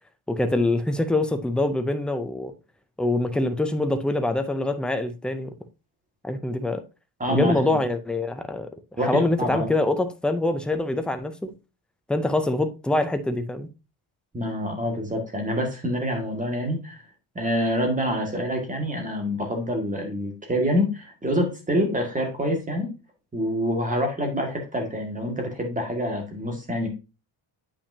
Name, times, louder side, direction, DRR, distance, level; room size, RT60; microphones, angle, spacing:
voice 1, 0.3-2.5 3.0-5.5 6.2-6.8 7.3-8.7 9.1-11.5 12.1-13.7, left 2 dB, ahead, 0.3 m, -24 dB
voice 2, 7.2-7.8 9.0-9.7 14.3-17.1 17.4-22.9 23.3-26.9, equal, 15° right, 1.8 m, -26 dB
8.5 x 5.8 x 2.7 m
cardioid pair, 160°, 49 cm